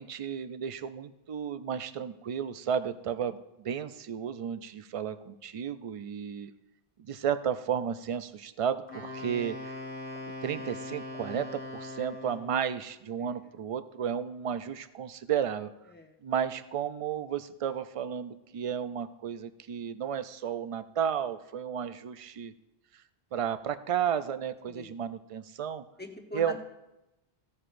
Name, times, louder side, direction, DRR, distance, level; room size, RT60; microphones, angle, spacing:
voice 1, 0.0-6.5 7.0-9.7 10.4-15.7 16.2-22.5 23.3-25.8 26.3-26.6, right 8 dB, 60° right, 12 dB, 0.3 m, -33 dB
Wind instrument woodwind instrument, 8.9-12.6, left 2 dB, 45° left, 1.9 m, -41 dB
voice 2, 26.0-26.6, left 2 dB, 10° left, 3 dB, 0.8 m, -43 dB
15.5 x 9.6 x 2.5 m, 0.96 s
omnidirectional pair, 1.0 m